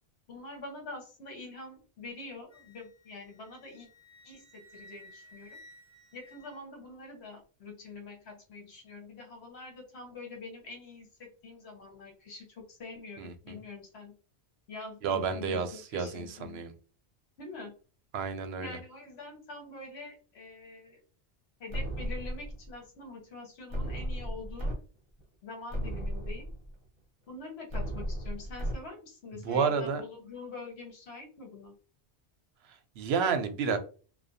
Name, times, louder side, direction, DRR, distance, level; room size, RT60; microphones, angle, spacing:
voice 1, 0.3-3.9 4.2-5.6 6.1-14.1 14.7-16.6 17.4-17.7 18.6-21.0 21.6-24.8 25.4-26.5 27.3-31.7, left 3 dB, 70° left, 1.1 m, -45 dB
Wind instrument woodwind instrument, 2.5-7.1, left 1 dB, 35° left, 0.5 m, -56 dB
voice 2, 13.2-13.6 15.0-16.7 18.1-18.8 29.3-30.0 32.7-33.8, right 6 dB, 70° right, 0.8 m, -31 dB
sound 1, 21.7-22.7 23.7-24.7 25.2-25.3 25.7-26.7 27.7-28.7, right 1 dB, 30° right, 0.7 m, -35 dB
2.4 x 2.2 x 2.6 m
omnidirectional pair, 1.1 m